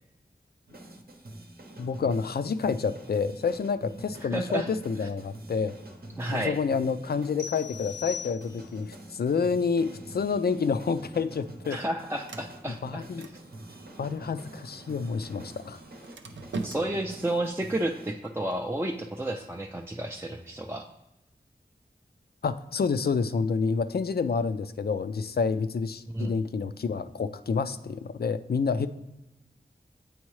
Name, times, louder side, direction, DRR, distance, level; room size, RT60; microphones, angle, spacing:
sound 1, 0.7-18.1, right 1 dB, 55° right, 0.8 m, -47 dB
voice 1, 1.8-5.7 6.3-11.8 12.8-13.3 14.0-15.8 22.4-28.9, left 5 dB, 60° left, 12 dB, 0.4 m, -28 dB
voice 2, 4.2-4.7 6.2-6.6 11.7-13.0 16.6-20.9 26.1-26.3, right 1 dB, 15° right, 2 dB, 0.4 m, -31 dB
sound 2, 7.4-8.9, left 8 dB, 80° left, 0.9 m, -40 dB
Sliding door, 11.0-21.0, right 3 dB, 85° right, 0.5 m, -45 dB
8.4 x 3.5 x 3.1 m, 0.97 s
wide cardioid pair, 45°, 18 cm